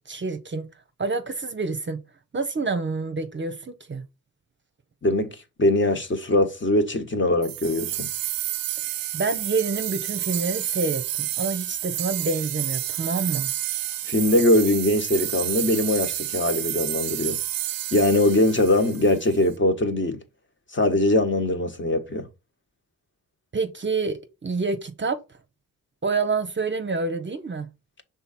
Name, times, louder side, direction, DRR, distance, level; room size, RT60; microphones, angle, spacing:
voice 1, 0.1-0.7 1.0-2.0 2.3-4.0 9.1-11.0 11.4-13.5 23.5-25.2 26.0-27.7, right 4 dB, 35° right, 0.8 m, -27 dB
voice 2, 5.0-8.1 14.0-17.4 17.9-20.2 20.7-22.3, left 1 dB, 35° left, 1.3 m, -22 dB
sound 1, 7.4-19.4, right 12 dB, 75° right, 0.5 m, -30 dB
5.7 x 3.9 x 4.2 m
cardioid pair, 70°, 35 cm